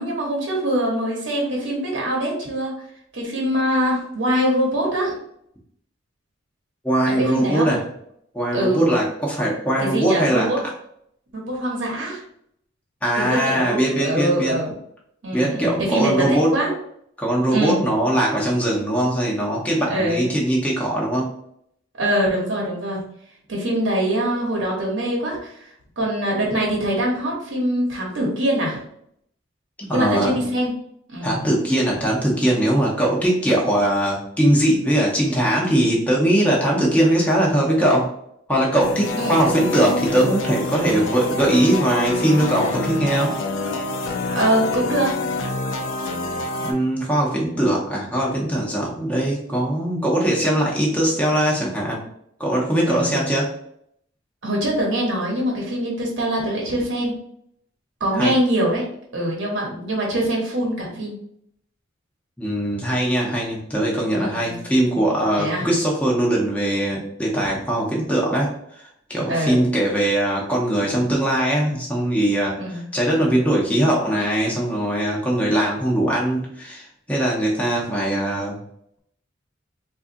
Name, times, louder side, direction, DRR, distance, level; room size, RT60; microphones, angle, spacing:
voice 1, 0.0-2.7 3.1-5.2 7.1-7.7 8.5-8.9 9.8-10.6 11.3-12.2 13.1-14.7 15.2-16.7 17.5-17.8 19.9-20.3 22.0-23.0 23.5-25.7 26.0-28.8 29.9-30.7 31.1-31.5 39.2-39.6 44.3-45.2 52.9-53.3 54.4-57.2 58.0-58.9 59.1-61.2 64.1-64.6 65.4-65.7 67.4-67.6 69.3-69.7 72.6-72.9, right 1 dB, 65° right, -2 dB, 1.0 m, -23 dB
voice 2, 6.8-7.8 8.3-10.5 13.0-14.6 15.3-16.6 17.2-21.3 29.8-30.3 31.2-38.1 38.5-43.3 46.6-52.0 52.4-53.5 58.1-58.3 62.4-68.5 69.1-78.6, right 1 dB, 5° left, -4 dB, 0.7 m, -21 dB
sound 1, 38.8-46.7, left 2 dB, 65° left, 0.5 m, -26 dB
4.0 x 2.4 x 2.6 m, 0.71 s
head